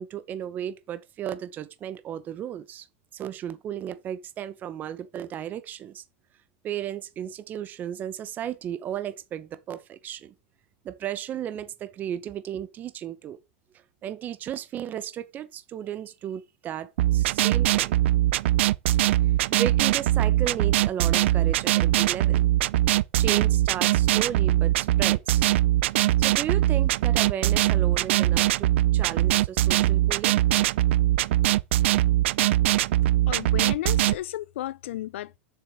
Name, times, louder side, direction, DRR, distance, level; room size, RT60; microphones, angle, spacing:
voice 1, 0.0-2.9 3.1-6.0 6.6-10.3 10.8-13.4 14.0-17.9 19.2-22.5 23.2-25.5 26.2-30.4, right 10 dB, 25° right, 1.0 m, -34 dB
sound 1, 17.0-34.1, right 14 dB, 75° right, 0.5 m, -22 dB
voice 2, 33.3-35.4, left 14 dB, 80° left, 0.5 m, -33 dB
7.3 x 6.3 x 7.8 m
supercardioid pair, 145°, 7 cm